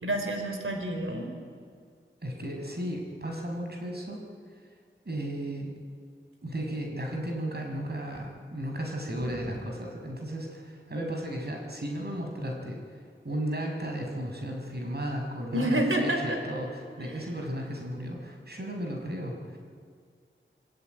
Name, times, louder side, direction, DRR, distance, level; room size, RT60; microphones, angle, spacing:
voice 1, 0.0-1.2 9.2-9.4 15.5-16.4, right 1 dB, 80° right, 4 dB, 4.5 m, -28 dB
voice 2, 2.2-4.2 5.0-5.7 6.4-12.8 13.2-19.6, right 1 dB, 50° right, 2 dB, 6.0 m, -34 dB
27.5 x 21.0 x 9.2 m, 2.1 s
wide cardioid pair, 65°, 21 cm